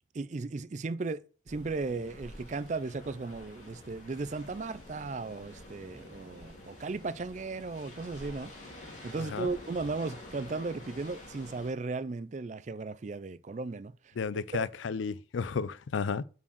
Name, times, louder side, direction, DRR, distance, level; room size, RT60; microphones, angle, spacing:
voice 1, 0.1-8.5 9.0-14.6, right 3 dB, 40° right, 0.4 m, -36 dB
sound 1, 1.5-11.7, left 1 dB, 40° left, 2.2 m, -49 dB
voice 2, 9.2-9.5 14.2-16.2, left 5 dB, 80° left, 0.4 m, -33 dB
5.7 x 4.7 x 6.4 m
head